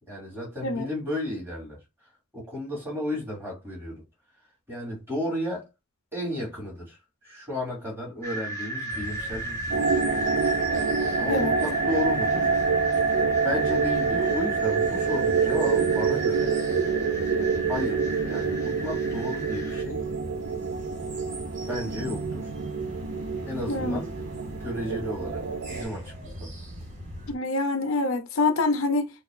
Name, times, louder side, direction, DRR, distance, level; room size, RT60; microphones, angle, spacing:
voice 1, 0.1-1.8 2.3-4.0 4.7-5.7 6.1-7.0 7.2-10.0 11.2-12.5 13.4-16.5 17.7-20.0 21.7-22.5 23.5-24.1 24.6-26.5, left 1 dB, 10° right, 2.7 m, -33 dB
sound 1, 8.2-19.8, right 2 dB, 15° left, 0.8 m, -34 dB
sound 2, 8.9-27.3, equal, 40° right, 3.0 m, -41 dB
sound 3, 9.7-25.8, right 5 dB, 65° right, 0.5 m, -27 dB
voice 2, 23.7-24.0 27.3-29.1, left 3 dB, 75° left, 0.6 m, -25 dB
6.4 x 2.4 x 2.6 m
head